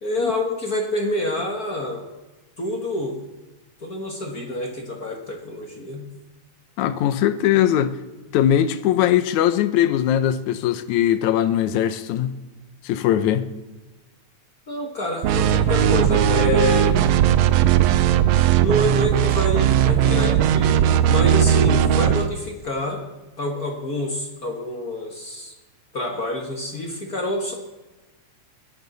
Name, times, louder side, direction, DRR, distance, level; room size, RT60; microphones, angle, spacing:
voice 1, 0.0-2.0 2.6-3.2 3.8-6.1 14.7-17.0 18.6-23.1 23.4-25.6 25.9-27.5, left 1 dB, 45° left, 1.3 m, -27 dB
voice 2, 6.8-8.0 8.3-12.4 12.8-13.5, left 11 dB, 75° left, 2.1 m, -20 dB
sound 1, 15.2-22.3, right 10 dB, 75° right, 1.6 m, -18 dB
22.0 x 11.5 x 4.0 m
omnidirectional pair, 3.5 m